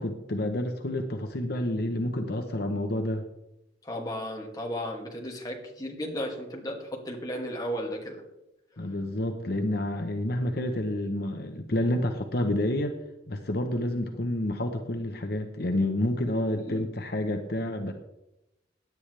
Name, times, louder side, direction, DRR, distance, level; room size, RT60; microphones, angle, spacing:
voice 1, 0.0-3.2 8.8-12.9 13.3-17.9, left 1 dB, 55° left, 5 dB, 1.0 m, -29 dB
voice 2, 3.9-8.2 16.5-16.8, equal, 20° left, 0 dB, 2.3 m, -34 dB
17.0 x 10.5 x 3.4 m, 0.90 s
head